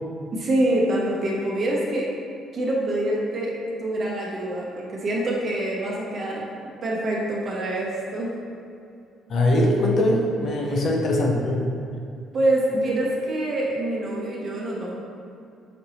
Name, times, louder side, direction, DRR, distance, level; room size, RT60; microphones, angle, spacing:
voice 1, 0.3-2.1 2.5-6.4 6.8-8.3 10.6-10.8 12.3-14.9, right 1 dB, 45° right, -3 dB, 0.8 m, -25 dB
voice 2, 9.3-11.6, left 1 dB, 50° left, 0 dB, 0.6 m, -21 dB
5.2 x 2.8 x 2.8 m, 2.5 s
cardioid pair, 110°, 0 cm